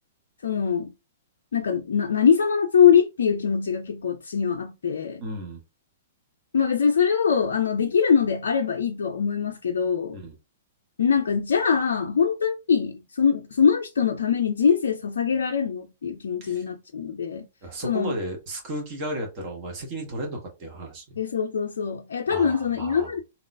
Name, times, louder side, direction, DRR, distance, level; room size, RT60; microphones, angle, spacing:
voice 1, 0.4-0.9 1.5-5.2 6.5-10.2 11.0-17.5 17.8-18.2 21.2-23.2, left 7 dB, 65° left, 0.4 m, -23 dB
voice 2, 5.2-5.6 10.1-10.3 16.4-16.6 17.6-21.2 22.3-23.1, right 1 dB, 35° right, 1.5 m, -34 dB
3.7 x 2.9 x 2.3 m
figure-of-eight pair, 110°, 0 cm